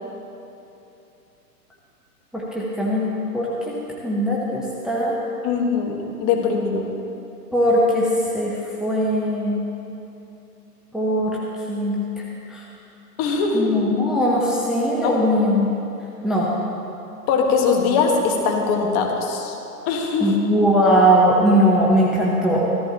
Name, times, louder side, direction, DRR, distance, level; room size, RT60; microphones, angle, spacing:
voice 1, 2.3-3.1 3.3-3.8 4.0-5.1 7.5-9.6 10.9-11.4 11.7-12.0 12.5-12.6 13.5-15.7 16.2-16.5 20.2-22.7, equal, ahead, -6 dB, 0.8 m, -20 dB
voice 2, 5.4-6.8 13.2-13.7 15.0-15.2 17.3-19.5 19.9-20.3, left 5 dB, 35° left, 1 dB, 1.5 m, -21 dB
15.0 x 14.0 x 2.9 m, 2.9 s
hypercardioid pair, 120°, 48 cm